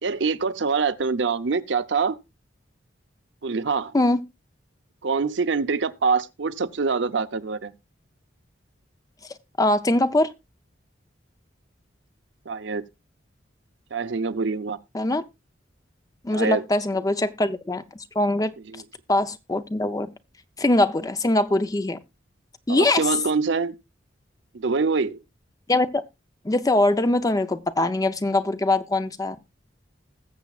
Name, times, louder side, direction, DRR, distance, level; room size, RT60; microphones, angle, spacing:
voice 1, 0.0-2.2 3.4-3.9 5.0-7.7 12.5-12.8 13.9-14.8 16.3-16.6 18.7-18.8 22.7-23.7 24.5-25.2, right 4 dB, 70° right, 0.6 m, -25 dB
voice 2, 9.6-10.3 14.9-15.2 16.2-17.8 18.1-18.5 19.1-20.1 20.6-22.0 22.7-23.1 25.7-26.0 26.4-29.4, left 2 dB, 20° left, 0.5 m, -22 dB
20.5 x 7.0 x 2.4 m
head